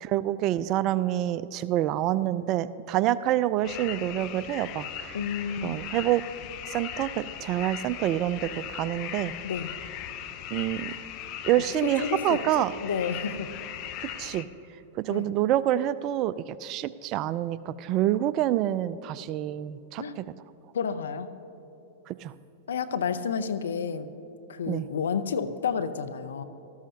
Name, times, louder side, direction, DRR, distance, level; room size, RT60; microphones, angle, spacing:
voice 1, 0.0-5.2 5.6-6.2 6.6-9.3 10.5-10.9 11.4-12.7 14.0-14.5 15.0-20.2 22.1-22.3 24.7-24.9, right 13 dB, 40° right, 17 dB, 0.4 m, -27 dB
sound 1, 3.6-14.4, left 10 dB, 45° left, 0.8 m, -38 dB
voice 2, 5.1-5.8 9.4-9.8 11.6-13.5 15.1-15.3 20.0-20.1 20.7-21.3 22.7-24.1 24.5-26.4, left 6 dB, 80° left, 11 dB, 0.7 m, -31 dB
18.5 x 13.5 x 2.8 m, 2.9 s
hypercardioid pair, 105°, 0 cm